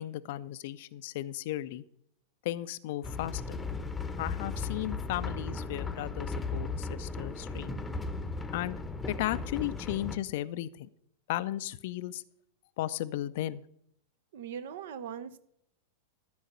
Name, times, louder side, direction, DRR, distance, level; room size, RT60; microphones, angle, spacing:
voice 1, 0.0-1.8 2.4-3.6 4.2-7.8 8.5-8.8 9.1-10.9 11.3-12.2 12.8-13.6, left 14 dB, 50° left, 16 dB, 0.5 m, -35 dB
sound 1, 3.0-10.2, left 3 dB, 10° left, 0.9 m, -36 dB
voice 2, 14.3-15.4, right 8 dB, 55° right, 14 dB, 0.7 m, -40 dB
12.5 x 5.4 x 6.6 m, 0.71 s
figure-of-eight pair, 90°, 0 cm